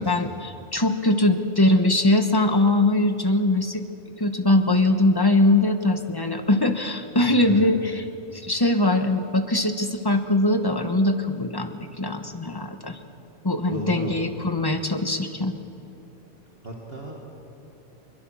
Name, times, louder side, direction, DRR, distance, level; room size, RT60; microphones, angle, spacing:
voice 1, 0.0-3.8 4.2-8.0 8.3-13.0 13.4-15.5, left 2 dB, 20° left, 7 dB, 1.1 m, -22 dB
voice 2, 7.3-7.7 13.7-14.2 16.6-17.2, equal, 50° right, -1 dB, 2.2 m, -34 dB
22.5 x 22.0 x 6.3 m, 2.9 s
omnidirectional pair, 1.3 m